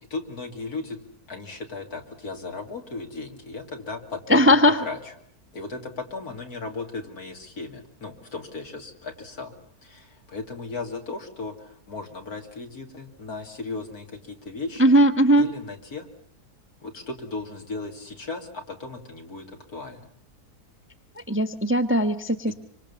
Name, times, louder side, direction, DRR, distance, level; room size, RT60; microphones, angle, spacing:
voice 1, 0.1-1.0 1.3-4.5 4.8-5.0 5.5-9.5 9.8-14.8 15.4-16.1 16.8-20.1, left 3 dB, 75° left, 3 dB, 3.1 m, -36 dB
voice 2, 4.3-4.8 14.8-15.5 21.2-22.5, equal, 10° right, 8 dB, 0.7 m, -19 dB
25.5 x 25.0 x 7.0 m, 0.63 s
omnidirectional pair, 1.6 m